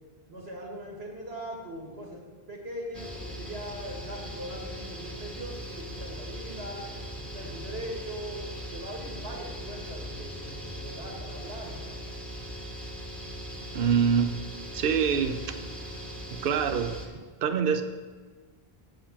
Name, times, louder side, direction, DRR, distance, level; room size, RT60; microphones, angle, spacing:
voice 1, 0.3-2.2 2.5-6.9 7.2-8.5 8.7-11.9, equal, 90° right, -1 dB, 2.2 m, -40 dB
sound 1, 2.9-17.1, equal, ahead, 1.1 m, -40 dB
voice 2, 13.7-14.4 14.7-15.6 16.3-17.8, right 7 dB, 65° right, 8 dB, 0.8 m, -26 dB
8.6 x 5.1 x 7.2 m, 1.5 s
omnidirectional pair, 1.0 m